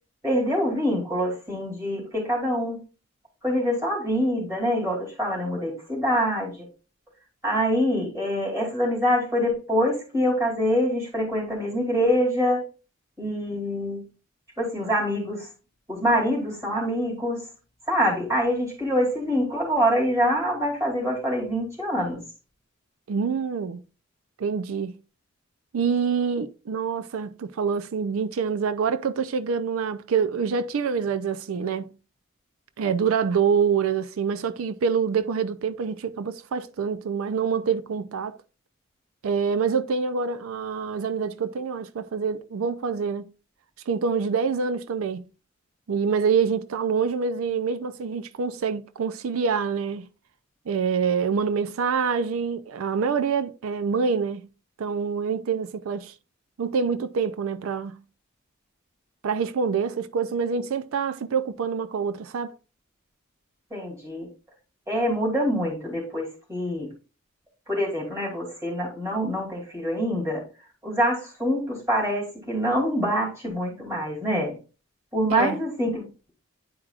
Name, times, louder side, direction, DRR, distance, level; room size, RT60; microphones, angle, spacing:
voice 1, 0.2-2.8 3.4-6.7 7.4-12.7 13.2-14.0 14.6-15.5 15.9-17.4 17.9-22.2 63.7-64.3 64.9-66.9 67.7-70.4 70.8-74.5 75.1-76.3, equal, 15° right, 2.8 m, -25 dB
voice 2, 23.1-23.8 24.4-24.9 25.7-31.9 32.8-38.4 39.2-43.3 43.9-45.3 45.9-50.1 50.7-54.4 54.8-56.1 56.6-58.0 59.2-62.5 75.3-75.6, right 6 dB, 85° right, 0.4 m, -26 dB
9.9 x 4.8 x 2.4 m
head